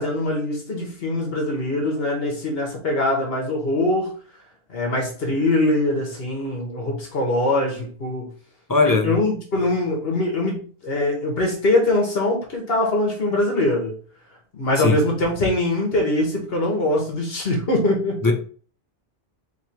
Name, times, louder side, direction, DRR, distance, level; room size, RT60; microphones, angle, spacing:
voice 1, 0.0-4.1 4.7-8.3 8.8-13.9 14.5-18.2, left 1 dB, 70° left, 1.3 m, -22 dB
voice 2, 8.7-9.1 14.8-15.0 18.2-18.3, left 3 dB, 25° left, 0.5 m, -18 dB
3.2 x 3.0 x 4.2 m
omnidirectional pair, 1.0 m